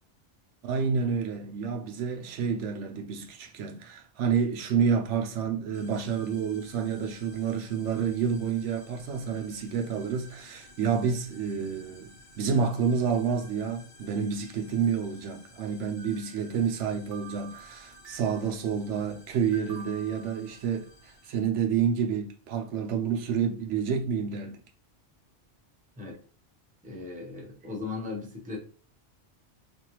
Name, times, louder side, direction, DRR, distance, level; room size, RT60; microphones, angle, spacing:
voice 1, 0.6-24.6, right 6 dB, 80° right, 0.9 m, -29 dB
sound 1, 5.7-21.4, left 1 dB, 75° left, 1.1 m, -54 dB
sound 2, 16.0-16.8 17.1-18.5 19.5-21.1, right 5 dB, 50° right, 0.7 m, -49 dB
voice 2, 26.8-28.6, left 4 dB, 10° right, 0.7 m, -37 dB
3.4 x 2.4 x 2.9 m
omnidirectional pair, 1.2 m